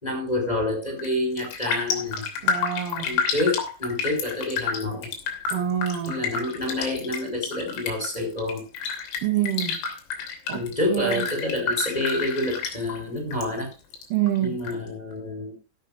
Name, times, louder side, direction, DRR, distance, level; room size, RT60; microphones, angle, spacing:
voice 1, 0.0-2.2 3.0-5.1 6.1-8.7 10.5-13.7 14.4-15.6, left 2 dB, 10° left, 2 dB, 4.3 m, -28 dB
Raindrop, 0.9-1.1 1.4-13.5 13.7-14.7 15.1-15.2, left 6 dB, 90° left, 5.6 m, -30 dB
voice 2, 2.4-3.1 5.5-6.1 9.2-9.8 10.5-10.6 10.9-11.2 14.1-14.6, right 11 dB, 65° right, 6 dB, 2.2 m, -26 dB
15.5 x 12.0 x 2.5 m, 0.28 s
omnidirectional pair, 5.6 m